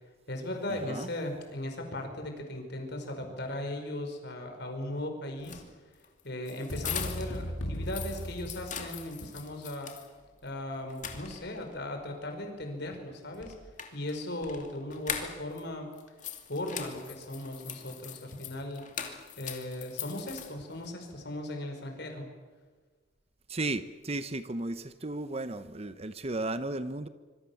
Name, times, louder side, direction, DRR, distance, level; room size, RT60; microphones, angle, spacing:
voice 1, 0.3-5.6 6.2-9.9 10.4-13.6 13.9-15.9 16.5-18.8 19.4-22.3, left 1 dB, 55° left, 4 dB, 5.3 m, -37 dB
sound 1, 5.3-7.4 7.7-10.1 10.5-10.6 10.9-11.7 13.3-15.6 15.9-20.9, left 8 dB, 40° left, 2.6 m, -41 dB
sound 2, 6.7-9.2, equal, 75° left, 7.9 m, -37 dB
voice 2, 23.5-27.1, right 2 dB, 30° right, 12 dB, 0.9 m, -34 dB
26.0 x 24.5 x 7.2 m, 1.4 s
head